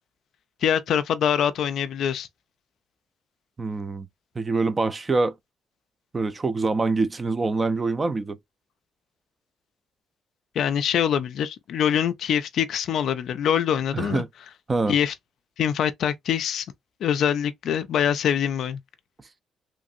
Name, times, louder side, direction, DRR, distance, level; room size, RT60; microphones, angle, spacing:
voice 1, 0.6-2.3 10.6-14.2 14.9-15.1 15.6-16.7 17.0-18.8, left 9 dB, 70° left, 0.3 m, -24 dB
voice 2, 3.6-4.1 4.4-5.3 6.1-8.4 13.9-14.3 14.7-14.9, right 3 dB, 30° right, 0.5 m, -25 dB
3.1 x 2.6 x 2.5 m
cardioid pair, 90°, 0 cm